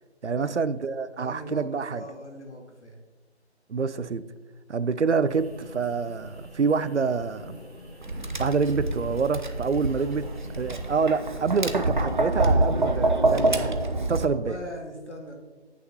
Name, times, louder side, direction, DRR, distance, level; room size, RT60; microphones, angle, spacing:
voice 1, 0.2-2.0 3.7-4.2 4.7-7.6 8.4-10.3 10.5-13.8 14.1-14.6, right 5 dB, 85° right, 0.6 m, -27 dB
voice 2, 1.2-3.0 14.1-15.3, equal, 85° left, 2.1 m, -40 dB
sound 1, 5.2-10.9, equal, 10° right, 2.2 m, -43 dB
Tap, 8.0-14.2, right 2 dB, 45° right, 0.7 m, -26 dB
13.5 x 6.4 x 2.9 m
figure-of-eight pair, 165°, 34 cm